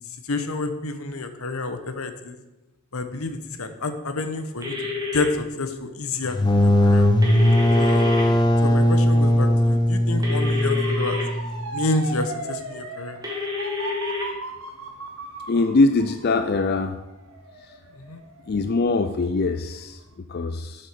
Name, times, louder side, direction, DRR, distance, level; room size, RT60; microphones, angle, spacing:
voice 1, 0.2-2.4 2.9-7.1 7.8-8.2 8.6-11.2 11.7-13.2 18.0-18.2, left 2 dB, 75° left, 9 dB, 1.1 m, -29 dB
sound 1, 4.6-5.2 7.2-8.2 10.2-11.2 13.2-14.3, left 4 dB, 15° right, 2.2 m, -29 dB
sound 2, 6.2-11.8, left 1 dB, 20° left, 0.8 m, -19 dB
Motor vehicle (road) / Siren, 10.4-19.3 19.7-20.1, right 2 dB, 65° right, 1.6 m, -37 dB
voice 2, 15.5-17.0 17.6-17.8 18.5-20.9, left 3 dB, 45° left, 8 dB, 0.4 m, -23 dB
7.8 x 7.6 x 6.8 m, 1.0 s
head